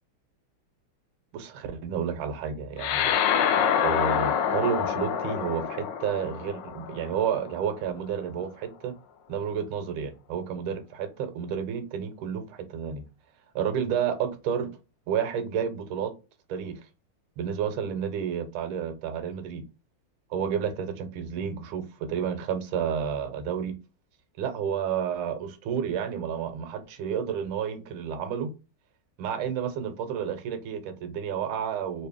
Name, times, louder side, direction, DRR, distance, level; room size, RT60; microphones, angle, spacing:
voice 1, 1.3-3.1 3.8-8.9 9.3-13.0 13.5-14.7 15.1-16.1 16.5-16.8 17.4-19.7 20.3-23.8 24.4-28.5 29.2-32.1, right 7 dB, 80° right, 1.5 m, -30 dB
sound 1, 2.8-7.5, left 8 dB, 75° left, 1.0 m, -26 dB
3.4 x 2.7 x 3.4 m
omnidirectional pair, 2.3 m